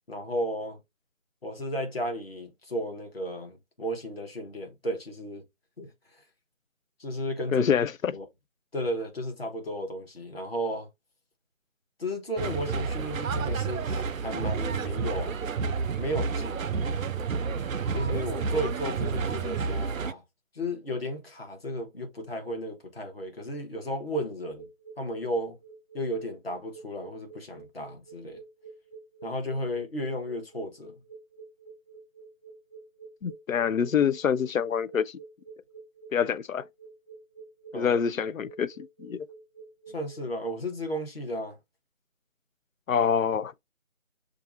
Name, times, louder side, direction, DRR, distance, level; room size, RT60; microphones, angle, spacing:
voice 1, 0.1-0.8 1.4-5.4 5.8-6.2 7.0-7.7 8.1-8.2 8.7-10.9 12.0-15.4 16.0-16.8 17.9-20.2 20.5-24.7 25.0-25.6 25.9-28.4 29.2-30.9 37.7-38.0 39.9-41.6, equal, 45° left, 1.1 m, -34 dB
voice 2, 7.5-8.1 33.2-35.2 36.1-36.6 37.7-39.3 42.9-43.6, left 7 dB, 90° left, 0.5 m, -26 dB
sound 1, 12.4-20.1, right 5 dB, 85° right, 0.5 m, -30 dB
sound 2, 24.6-40.2, right 5 dB, 70° left, 2.2 m, -49 dB
6.7 x 2.4 x 2.4 m
figure-of-eight pair, 170°, 40 cm